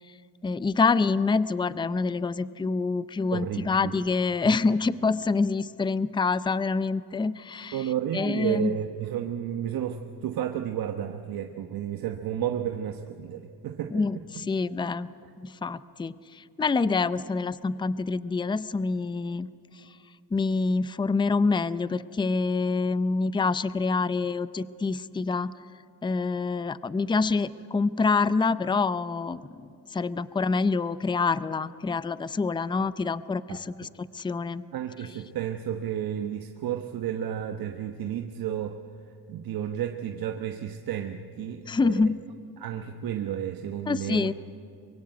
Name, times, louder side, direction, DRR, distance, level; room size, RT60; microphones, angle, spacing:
voice 1, 0.4-7.8 8.1-8.7 13.9-15.1 15.4-19.5 20.3-25.5 26.0-29.4 29.9-34.6 41.6-42.2 43.9-44.3, left 4 dB, 10° left, 16 dB, 0.5 m, -26 dB
voice 2, 3.3-4.0 4.4-4.5 7.7-14.2 33.5-33.9 34.7-38.8 39.3-42.1 42.6-44.3, right 10 dB, 60° right, 5 dB, 1.2 m, -32 dB
24.0 x 23.0 x 8.1 m, 2.6 s
cardioid pair, 110°, 39 cm